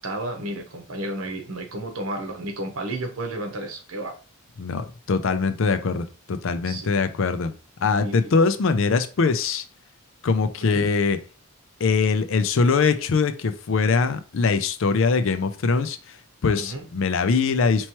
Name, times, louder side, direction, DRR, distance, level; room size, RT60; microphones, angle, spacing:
voice 1, 0.0-4.2 6.6-6.9 7.9-8.3 10.6-10.8 16.5-16.9, right 1 dB, 85° right, 1.0 m, -32 dB
voice 2, 4.6-7.5 7.8-9.6 10.2-11.2 11.8-16.2 16.4-17.9, left 4 dB, 60° left, 0.4 m, -22 dB
4.4 x 3.0 x 2.9 m
head